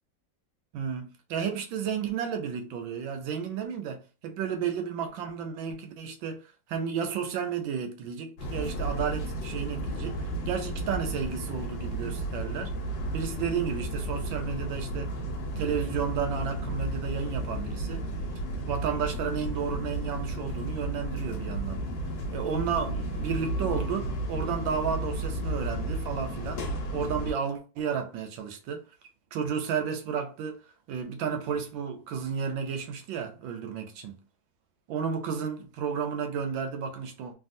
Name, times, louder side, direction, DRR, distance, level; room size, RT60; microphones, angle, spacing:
voice 1, 0.7-6.4 6.7-12.7 13.1-15.1 15.6-18.1 18.7-21.9 22.3-26.7 26.9-28.8 29.3-30.6 30.9-34.2 34.9-37.3, right 7 dB, 90° right, 1.4 m, -32 dB
sound 1, 8.4-27.3, right 1 dB, 80° left, 1.5 m, -33 dB
sound 2, 14.4-24.3, right 2 dB, 55° right, 0.8 m, -50 dB
3.4 x 2.4 x 2.6 m
omnidirectional pair, 2.1 m